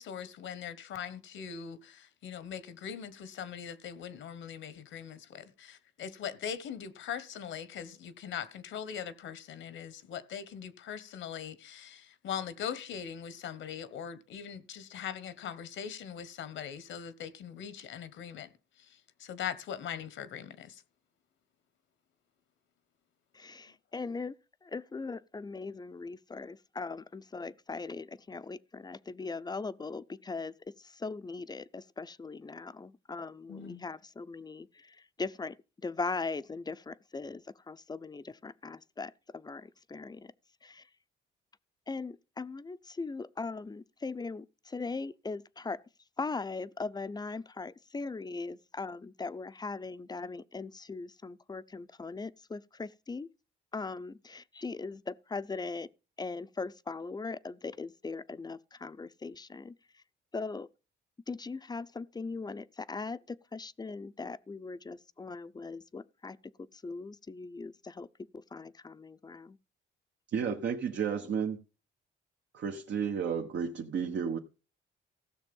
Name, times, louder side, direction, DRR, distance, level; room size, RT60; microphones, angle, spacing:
voice 1, 0.0-18.5 19.2-20.7 33.5-33.8, left 8 dB, 75° left, 1.3 m, -41 dB
voice 2, 23.3-24.4 24.6-40.3 40.6-40.9 41.9-45.8 46.2-53.3 53.7-55.9 56.2-59.7 60.3-60.7 61.3-66.4 66.7-68.1 68.3-69.6, left 4 dB, 20° left, 0.6 m, -40 dB
voice 3, 70.3-71.6 72.5-74.4, right 7 dB, 65° right, 1.3 m, -32 dB
15.5 x 6.5 x 5.4 m
cardioid pair, 90°, 20 cm